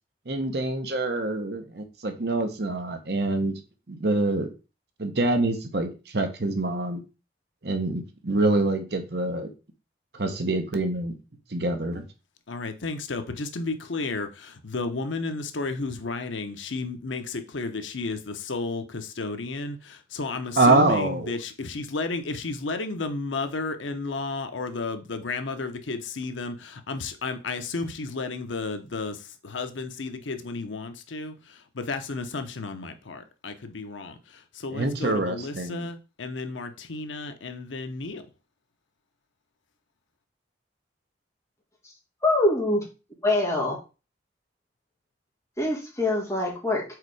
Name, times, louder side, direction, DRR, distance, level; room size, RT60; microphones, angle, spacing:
voice 1, 0.3-3.5 3.9-4.5 5.0-7.0 7.6-9.5 10.1-11.1 11.5-12.0 20.6-21.3 34.7-35.9, right 2 dB, 60° right, 1.0 m, -25 dB
voice 2, 12.5-38.2, left 3 dB, 90° left, 0.8 m, -33 dB
voice 3, 42.2-42.9 43.2-43.8 45.6-46.8, left 2 dB, 15° left, 2.1 m, -24 dB
4.8 x 4.2 x 4.8 m
head